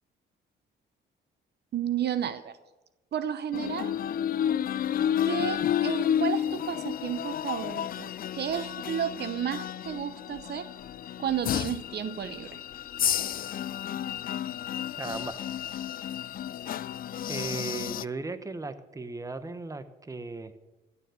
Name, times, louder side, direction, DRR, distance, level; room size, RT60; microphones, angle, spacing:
voice 1, 1.7-2.6 3.1-3.9 5.2-10.7 11.2-12.6, right 9 dB, 55° right, 12 dB, 0.8 m, -32 dB
sound 1, 3.5-18.0, left 10 dB, 45° left, 0.4 m, -31 dB
voice 2, 15.0-15.4 17.3-20.5, right 3 dB, 15° right, 11 dB, 1.0 m, -36 dB
15.5 x 6.9 x 8.2 m, 1.1 s
cardioid pair, 90°, 20 cm